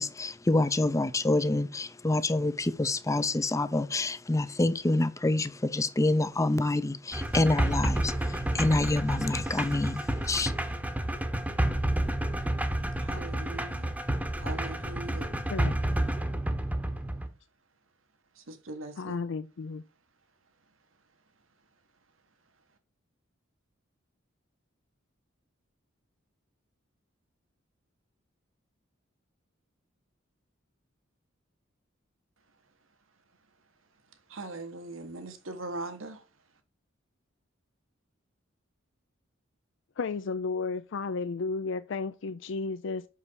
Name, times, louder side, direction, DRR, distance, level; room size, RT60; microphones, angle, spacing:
voice 1, 0.0-10.5, left 2 dB, 15° left, 0.5 m, -27 dB
sound 1, 7.1-17.3, right 1 dB, 10° right, 0.9 m, -30 dB
voice 2, 13.0-13.9 14.4-15.3 18.3-19.2 34.3-36.2, right 2 dB, 80° right, 1.4 m, -40 dB
voice 3, 19.0-19.8 40.0-43.1, left 4 dB, 65° left, 0.5 m, -33 dB
6.0 x 5.5 x 6.2 m
head